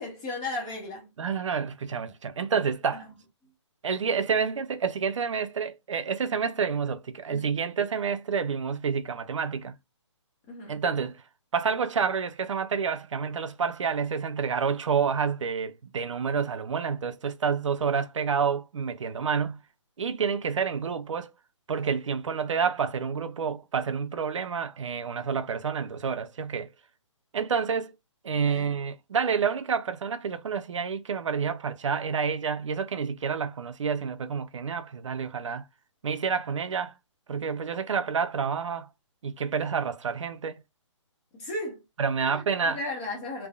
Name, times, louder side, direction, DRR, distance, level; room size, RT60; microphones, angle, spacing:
voice 1, 0.0-1.1 7.3-7.5 10.5-10.8 28.3-28.8 41.3-41.8 42.2-43.5, left 2 dB, 15° left, 0.7 m, -35 dB
voice 2, 1.2-3.1 3.8-9.7 10.7-11.2 11.5-19.6 20.0-21.3 21.7-26.7 27.3-27.9 28.2-35.6 36.0-36.9 37.3-38.9 39.2-40.6 42.0-42.8, right 6 dB, 75° right, 0.5 m, -29 dB
3.3 x 2.1 x 2.3 m
hypercardioid pair, 170°, 16 cm